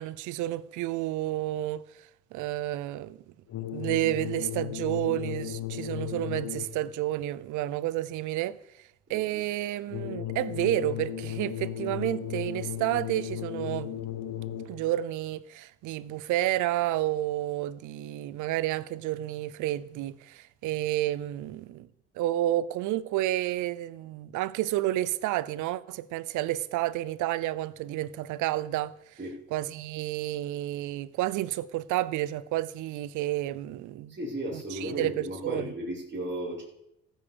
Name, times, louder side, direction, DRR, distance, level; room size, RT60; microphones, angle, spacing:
voice 1, 0.0-1.9 2.3-3.2 3.7-8.6 9.1-13.9 14.7-21.9 22.2-28.9 29.5-34.2 34.5-35.7, right 15 dB, 80° right, 0.7 m, -30 dB
sound 1, 3.5-6.9 9.9-14.9, left 11 dB, 65° left, 1.2 m, -35 dB
voice 2, 9.1-9.4 29.2-29.4 34.1-36.6, right 1 dB, 40° right, 5.9 m, -35 dB
15.5 x 7.2 x 5.5 m
supercardioid pair, 60°, 30 cm